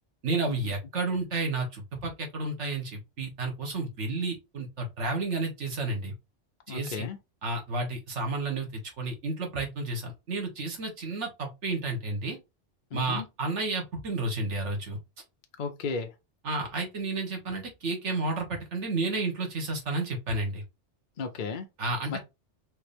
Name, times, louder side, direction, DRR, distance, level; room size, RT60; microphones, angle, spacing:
voice 1, 0.2-6.1 6.7-7.1 7.4-12.4 12.9-15.0 16.4-20.6 21.8-22.2, right 3 dB, 75° right, 1.6 m, -31 dB
voice 2, 6.7-7.2 12.9-13.3 15.6-16.1 21.2-21.7 22.1-22.2, left 4 dB, 50° left, 0.7 m, -34 dB
4.7 x 3.0 x 3.3 m
omnidirectional pair, 1.2 m